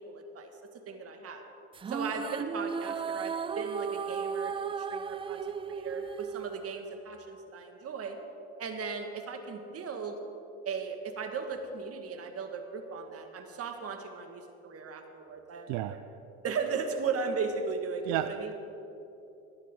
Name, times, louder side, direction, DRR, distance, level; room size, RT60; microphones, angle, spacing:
voice 1, 0.1-0.5 0.8-1.4 1.9-8.2 8.6-10.1 10.6-16.0 16.4-18.5, right 5 dB, 45° right, 5 dB, 1.8 m, -37 dB
sound 1, 1.7-7.2, right 6 dB, 15° right, 0.3 m, -35 dB
voice 2, 18.1-18.5, right 14 dB, 75° right, 11 dB, 0.5 m, -32 dB
18.0 x 11.5 x 3.8 m, 2.9 s
supercardioid pair, 85°, 33 cm